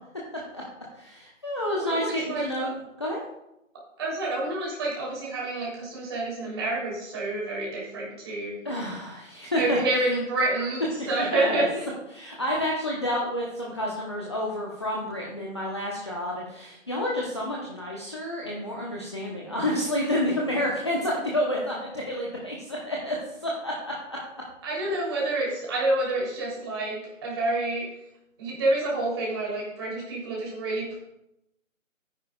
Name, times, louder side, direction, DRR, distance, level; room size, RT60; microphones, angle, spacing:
voice 1, 0.9-2.7 3.0-3.2 8.6-9.8 11.0-11.6 12.1-24.2, left 1 dB, 20° left, -4 dB, 0.9 m, -29 dB
voice 2, 1.8-2.6 4.0-8.6 9.5-11.8 24.6-27.9 28.4-30.9, right 2 dB, 20° right, -4 dB, 3.2 m, -28 dB
13.5 x 9.7 x 2.3 m, 0.85 s
figure-of-eight pair, 170°, 40 cm